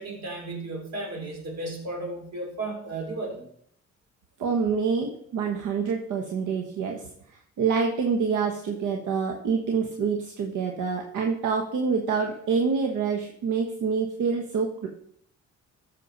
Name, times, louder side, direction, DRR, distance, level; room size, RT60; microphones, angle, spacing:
voice 1, 0.0-3.4, right 2 dB, 60° right, 1 dB, 3.6 m, -34 dB
voice 2, 4.4-7.0 7.6-14.9, right 5 dB, 80° right, 3 dB, 1.3 m, -26 dB
14.0 x 6.5 x 4.1 m, 0.67 s
cardioid pair, 90°, 30 cm